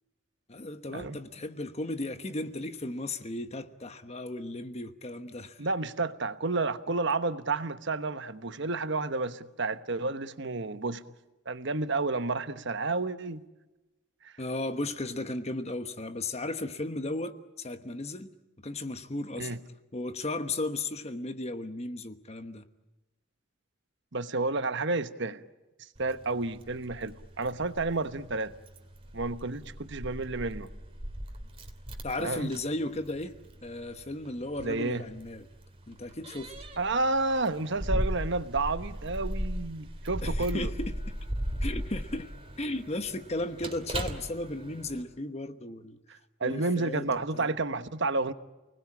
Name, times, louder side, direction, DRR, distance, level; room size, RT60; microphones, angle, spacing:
voice 1, 0.5-5.7 14.4-18.3 18.6-19.5 19.9-22.7 32.0-33.3 33.6-35.5 35.9-36.5 40.2-40.9 41.6-42.3 42.6-46.0 46.4-47.1 47.3-47.5, left 2 dB, 30° left, 1.1 m, -35 dB
voice 2, 5.6-11.0 11.5-13.4 14.2-14.3 19.4-19.6 24.1-25.4 26.0-28.5 29.1-30.7 32.2-32.5 34.6-35.0 36.8-40.7 46.4-48.3, right 3 dB, 55° right, 1.2 m, -30 dB
Keys jangling, 26.0-45.0, equal, 25° right, 2.8 m, -37 dB
29.5 x 20.5 x 8.7 m
head